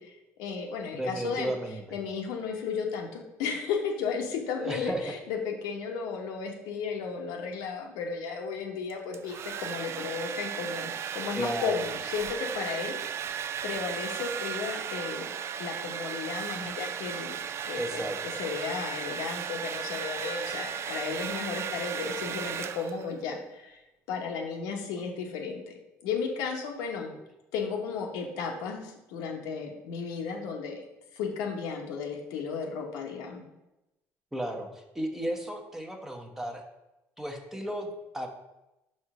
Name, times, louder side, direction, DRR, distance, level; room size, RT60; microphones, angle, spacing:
voice 1, 0.0-1.5 1.9-15.3 15.6-27.1 27.5-30.8 31.1-33.4, left 5 dB, 90° left, 1 dB, 1.1 m, -34 dB
voice 2, 0.9-1.8 4.6-5.0 11.4-11.8 17.7-18.2 34.3-34.7 34.9-36.6 37.2-38.3, right 1 dB, 5° right, 4 dB, 0.9 m, -34 dB
Domestic sounds home sounds, 8.9-23.2, right 8 dB, 45° right, 0.3 m, -36 dB
5.5 x 4.4 x 4.8 m, 0.94 s
cardioid pair, 110°, 6 cm